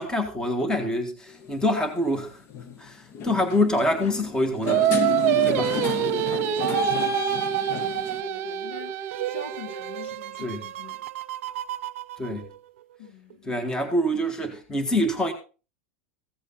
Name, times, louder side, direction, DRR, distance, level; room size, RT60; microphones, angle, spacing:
voice 1, 0.0-2.4 2.8-5.8 10.4-10.6 12.2-12.5 13.5-15.3, left 1 dB, 10° left, 1.7 m, -26 dB
sound 1, 1.3-1.5 2.5-2.8 3.1-8.2, left 4 dB, 40° left, 1.0 m, -31 dB
Singing, 4.7-10.0, right 11 dB, 35° right, 1.1 m, -26 dB
voice 2, 6.2-11.1 13.0-13.6, left 6 dB, 70° left, 3.1 m, -44 dB
sound 2, 6.6-12.8 13.3-13.4, right 14 dB, 80° right, 0.6 m, -33 dB
15.5 x 8.0 x 4.1 m
supercardioid pair, 135°, 7 cm